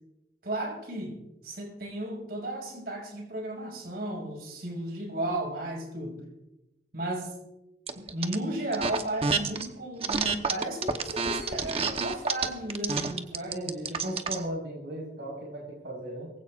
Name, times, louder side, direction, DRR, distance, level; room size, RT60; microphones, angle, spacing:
voice 1, 0.4-6.2 6.9-7.4 8.0-13.6, right 1 dB, 60° right, 0 dB, 5.8 m, -34 dB
sound 1, 7.9-8.4 8.7-9.7 10.0-14.4, right 4 dB, 35° right, 1.0 m, -29 dB
voice 2, 13.5-16.3, right 1 dB, 85° right, -3 dB, 4.7 m, -36 dB
22.5 x 16.0 x 2.5 m, 0.95 s
head